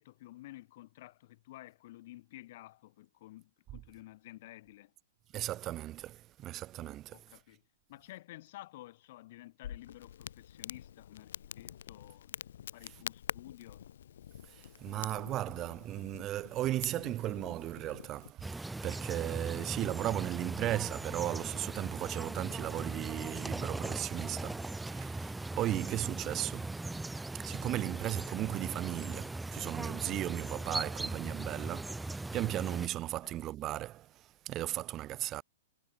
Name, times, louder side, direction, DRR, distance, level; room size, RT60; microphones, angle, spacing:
voice 1, 0.0-4.9 7.1-7.6 7.9-12.4 12.7-13.9 19.5-19.7 30.4-30.6 33.2-33.3, left 16 dB, 55° left, 2.2 m, -52 dB
voice 2, 5.3-7.4 14.5-26.8 27.3-35.4, right 14 dB, 30° right, 1.6 m, -36 dB
Crackle, 9.6-18.3, left 10 dB, 75° left, 0.9 m, -46 dB
sound 1, 18.4-32.9, right 2 dB, 5° right, 1.4 m, -39 dB
hypercardioid pair, 140°, 0 cm